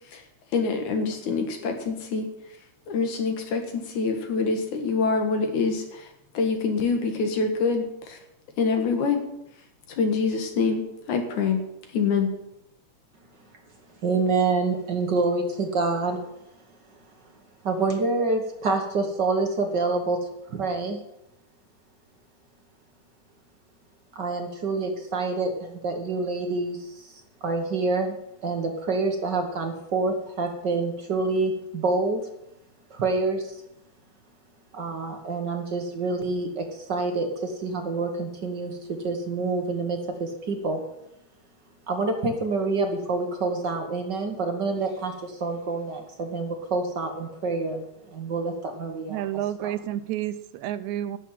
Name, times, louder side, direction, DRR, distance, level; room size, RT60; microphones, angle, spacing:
voice 1, 0.5-2.3 2.9-6.1 6.3-8.2 8.6-9.2 9.9-11.6 11.9-12.3, left 4 dB, 75° left, 4 dB, 3.2 m, -25 dB
voice 2, 14.0-16.2 17.6-20.2 20.5-21.0 24.1-28.1 28.4-32.2 32.9-33.6 34.7-40.8 41.9-49.2 49.6-49.7, right 3 dB, 50° right, 4 dB, 1.4 m, -27 dB
voice 3, 49.1-51.2, right 12 dB, 80° right, 13 dB, 1.9 m, -30 dB
11.5 x 7.2 x 9.0 m, 0.86 s
omnidirectional pair, 3.4 m